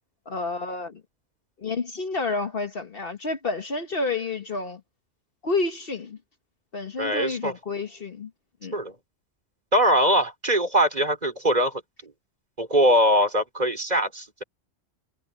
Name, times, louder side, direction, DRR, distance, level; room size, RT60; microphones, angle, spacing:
voice 1, 0.3-1.0 1.6-4.8 5.4-6.2 6.7-8.3 8.6-8.8, left 3 dB, 50° left, 1.4 m, -29 dB
voice 2, 7.0-7.5 8.7-9.0 9.7-12.1 12.6-14.4, equal, 35° right, 3.6 m, -22 dB
omnidirectional pair, 1.3 m